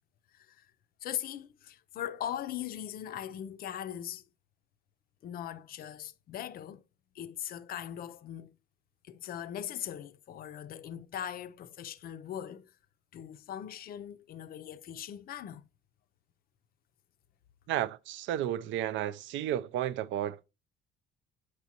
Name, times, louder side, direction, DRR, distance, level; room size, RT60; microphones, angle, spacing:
voice 1, 0.3-0.7 1.0-4.2 5.2-6.8 7.1-8.6 9.0-12.7 13.1-15.6, left 10 dB, 50° left, 0.5 m, -40 dB
voice 2, 17.7-20.4, right 12 dB, 75° right, 0.5 m, -32 dB
8.0 x 6.1 x 2.8 m
cardioid pair, 150°, 20 cm